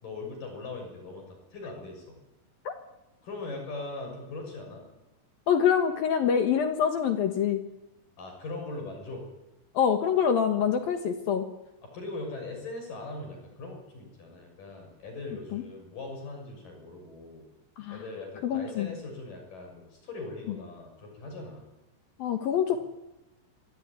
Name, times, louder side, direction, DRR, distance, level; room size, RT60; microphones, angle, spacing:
voice 1, 0.0-2.2 3.2-4.8 8.2-9.2 11.8-17.4 17.9-21.7, left 3 dB, 40° left, 3 dB, 8.0 m, -40 dB
voice 2, 5.5-7.6 9.7-11.5 15.5-15.6 17.8-18.0 18.4-18.9 22.2-22.8, left 8 dB, 65° left, 7 dB, 2.4 m, -25 dB
25.5 x 19.0 x 9.6 m, 1.0 s
omnidirectional pair, 5.9 m